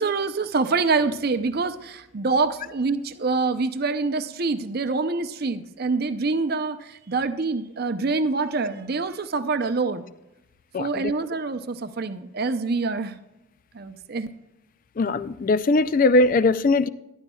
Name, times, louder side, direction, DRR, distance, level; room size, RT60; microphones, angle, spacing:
voice 1, 0.0-10.1 10.8-13.2 13.7-14.3, right 4 dB, 50° right, 0.6 m, -26 dB
voice 2, 10.7-11.1 15.0-16.9, left 3 dB, 40° left, 0.4 m, -20 dB
14.0 x 12.0 x 2.3 m
head